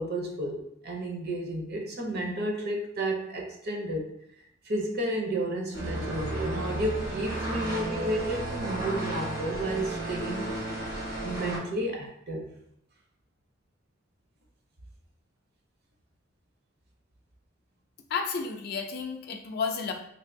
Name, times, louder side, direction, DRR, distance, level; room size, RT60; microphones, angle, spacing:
voice 1, 0.0-4.1 4.6-10.5 11.2-12.5, right 1 dB, 55° right, 1 dB, 0.6 m, -32 dB
sound 1, 5.7-11.6, right 1 dB, 85° right, 1.5 m, -33 dB
voice 2, 18.1-19.9, left 5 dB, 55° left, 4 dB, 0.4 m, -31 dB
3.3 x 2.5 x 2.5 m, 0.72 s
head